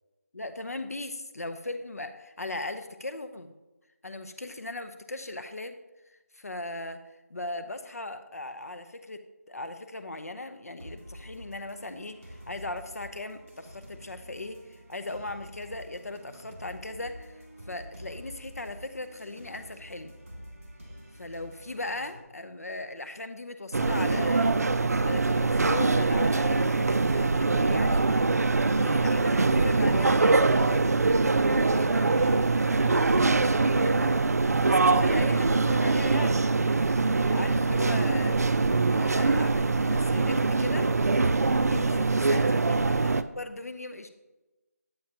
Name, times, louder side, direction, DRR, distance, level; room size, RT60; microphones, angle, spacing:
voice 1, 0.3-3.5 4.0-5.8 6.1-7.0 7.3-20.1 21.1-24.6 25.0-28.1 28.5-30.9 31.7-32.1 33.7-36.5 37.2-38.4 38.9-44.1, left 2 dB, 65° left, 9 dB, 0.6 m, -38 dB
sound 1, 10.8-22.2, equal, 50° right, 2.4 m, -48 dB
sound 2, 23.7-43.2, right 3 dB, 70° right, 0.4 m, -23 dB
voice 2, 31.9-33.3, right 1 dB, 20° right, -6 dB, 1.4 m, -39 dB
8.7 x 8.6 x 2.9 m, 1.1 s
figure-of-eight pair, 180°, 9 cm